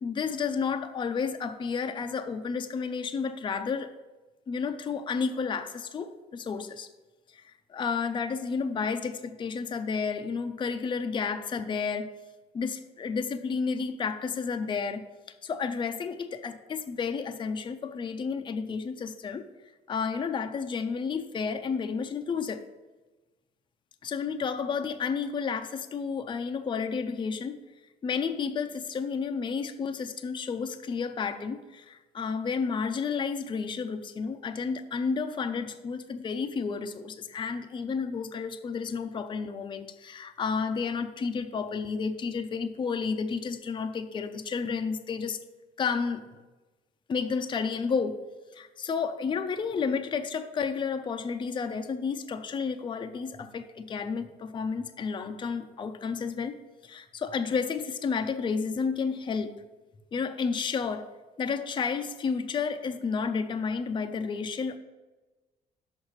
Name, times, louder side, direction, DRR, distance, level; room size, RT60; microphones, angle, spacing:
voice 1, 0.0-3.9 4.5-6.9 7.3-12.1 12.5-15.0 15.4-19.5 19.9-22.6 24.0-27.6 28.0-45.4 45.8-46.2 47.1-48.2 48.5-56.6 56.8-59.5 60.1-61.1 61.4-64.8, left 5 dB, 30° left, 7 dB, 0.5 m, -31 dB
6.4 x 5.2 x 6.3 m, 1.2 s
cardioid pair, 110°, 17 cm